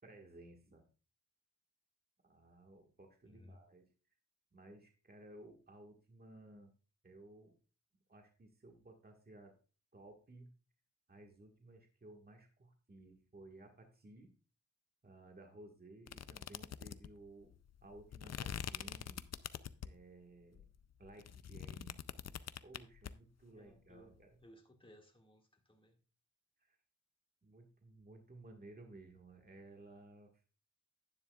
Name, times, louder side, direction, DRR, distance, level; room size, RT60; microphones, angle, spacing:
voice 1, 0.0-0.8 2.2-3.9 4.5-6.7 7.0-7.5 8.1-9.6 9.9-10.5 11.1-14.3 15.0-17.5 17.8-19.3 19.8-20.7 21.0-22.0 22.6-24.4 26.6-26.8 27.4-30.3, right 2 dB, 35° right, 1.6 m, -57 dB
voice 2, 3.3-3.6 23.6-26.0, left 1 dB, 20° left, 1.9 m, -61 dB
sound 1, 16.1-20.1 20.5-23.1, left 8 dB, 65° left, 0.5 m, -45 dB
11.0 x 9.8 x 2.3 m
wide cardioid pair, 90°, 29 cm